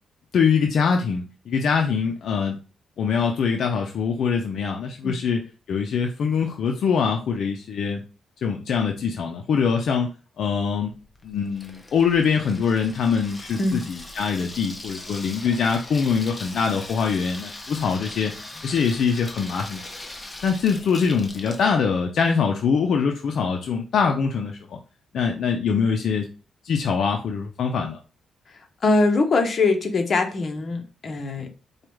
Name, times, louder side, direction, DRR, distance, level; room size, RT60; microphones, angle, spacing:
voice 1, 0.3-2.6 3.0-5.4 5.7-8.0 8.4-10.9 11.2-19.9 20.4-24.8 25.1-26.3 26.6-28.0, left 6 dB, 65° left, 2 dB, 0.5 m, -23 dB
Water tap faucet / Sink (filling or washing), 10.9-21.7, left 2 dB, 15° left, 0.9 m, -40 dB
voice 2, 28.8-31.5, left 3 dB, 45° left, 4 dB, 0.9 m, -22 dB
4.8 x 2.3 x 3.1 m, 0.34 s
cardioid pair, 100°, 0 cm